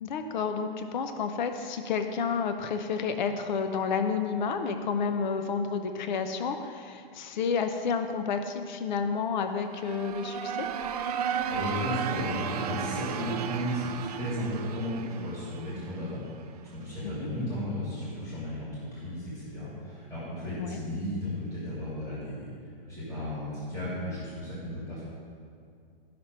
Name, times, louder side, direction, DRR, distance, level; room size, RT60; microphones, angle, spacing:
voice 1, 0.0-10.7 20.6-20.8, left 5 dB, 50° left, 7 dB, 0.6 m, -30 dB
sound 1, 9.6-16.4, right 7 dB, 40° right, 0.5 m, -34 dB
voice 2, 11.5-16.2 16.7-22.5 22.9-25.0, equal, 10° left, -11 dB, 2.7 m, -34 dB
12.0 x 6.0 x 5.4 m, 2.3 s
hypercardioid pair, 165°, 30 cm